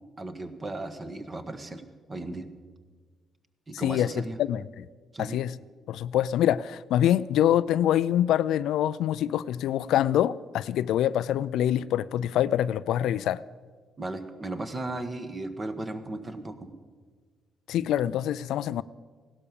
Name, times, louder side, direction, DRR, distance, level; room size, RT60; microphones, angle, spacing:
voice 1, 0.2-1.8 2.1-2.5 3.7-4.4 5.1-5.4 14.0-16.7, right 2 dB, 30° right, 1.5 m, -36 dB
voice 2, 3.7-4.1 4.4-4.9 5.2-5.6 5.9-13.4 17.7-18.8, left 11 dB, 80° left, 0.4 m, -25 dB
16.5 x 12.0 x 7.0 m
cardioid pair, 90°, 0 cm